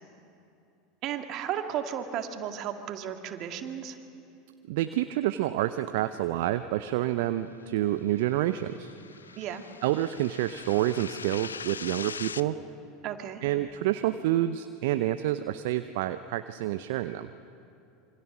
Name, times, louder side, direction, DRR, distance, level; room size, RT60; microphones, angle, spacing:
voice 1, 1.0-4.0 9.4-9.6 13.0-13.4, right 9 dB, 45° right, 6 dB, 2.0 m, -34 dB
voice 2, 4.7-8.9 9.8-12.6 13.4-17.3, right 14 dB, 65° right, 11 dB, 0.7 m, -28 dB
sound 1, 8.0-12.4, left 6 dB, 85° left, 0.5 m, -42 dB
27.0 x 24.0 x 6.1 m, 2.7 s
figure-of-eight pair, 80°, 0 cm